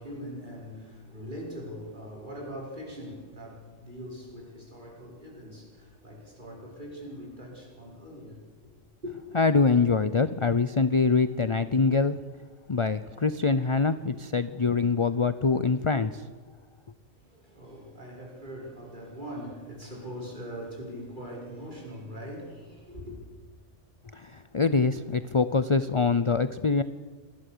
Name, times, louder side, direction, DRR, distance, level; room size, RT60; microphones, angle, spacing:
voice 1, 0.0-8.7 9.0-9.1 17.1-23.2, equal, 40° right, 6.4 m, -41 dB
voice 2, 9.3-12.2 12.7-16.2 24.1-26.8, left 4 dB, 30° left, 0.6 m, -24 dB
26.5 x 20.5 x 6.9 m
omnidirectional pair, 1.3 m